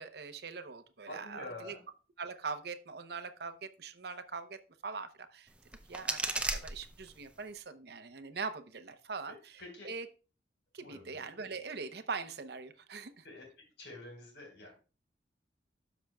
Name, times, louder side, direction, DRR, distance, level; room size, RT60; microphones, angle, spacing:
voice 1, 0.0-1.7 2.2-4.6 4.8-5.5 5.9-9.5 9.8-10.1 10.7-13.2, right 4 dB, 60° right, 9 dB, 0.7 m, -42 dB
voice 2, 1.1-1.8 9.6-9.9 10.8-11.2 13.2-13.4 13.8-14.8, left 2 dB, 75° left, 1 dB, 4.2 m, -47 dB
sound 1, 5.5-7.5, right 2 dB, 5° right, 0.5 m, -37 dB
12.5 x 6.0 x 2.3 m, 0.34 s
head